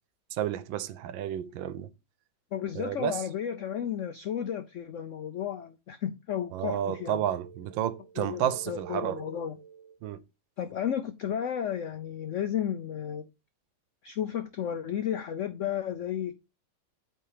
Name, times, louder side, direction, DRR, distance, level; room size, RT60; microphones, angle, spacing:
voice 1, 0.3-1.9 2.8-3.2 6.5-9.4 10.0-10.2, right 10 dB, 90° right, 1.4 m, -31 dB
voice 2, 2.5-7.2 8.2-9.6 10.6-13.3 14.0-16.4, left 9 dB, 80° left, 0.6 m, -33 dB
8.6 x 3.6 x 4.8 m
omnidirectional pair, 2.0 m